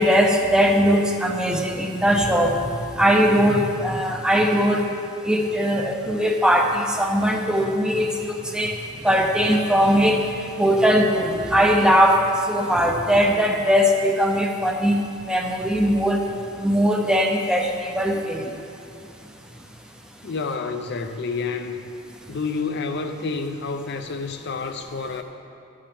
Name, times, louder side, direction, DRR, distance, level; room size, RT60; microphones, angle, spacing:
voice 1, 0.0-2.6 3.0-4.9 5.2-8.8 9.0-10.2 10.6-15.0 15.3-16.3 16.6-18.5, equal, 5° right, 2 dB, 0.6 m, -20 dB
voice 2, 20.2-21.9 22.3-25.2, left 4 dB, 55° left, 7 dB, 0.5 m, -29 dB
12.5 x 8.6 x 3.4 m, 2.5 s
head